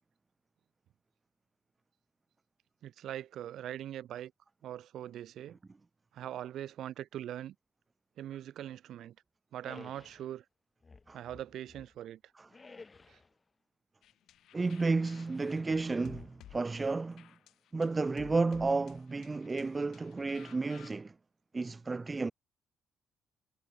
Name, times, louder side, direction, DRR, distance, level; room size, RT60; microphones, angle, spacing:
voice 1, 2.8-4.3 4.6-5.6 6.1-7.5 8.2-9.2 9.5-10.4 11.1-12.2 13.1-13.2, right 11 dB, 75° right, 0.8 m, -42 dB
sound 1, 9.6-10.3 10.8-12.0 12.5-13.3 15.2-15.7 16.1-16.8, left 4 dB, 30° left, 0.7 m, -54 dB
sound 2, 14.0-20.9, left 12 dB, 75° left, 0.6 m, -56 dB
voice 2, 14.5-17.3 17.7-21.1 21.5-22.3, right 3 dB, 25° right, 0.3 m, -32 dB
cardioid pair, 90°, 0 cm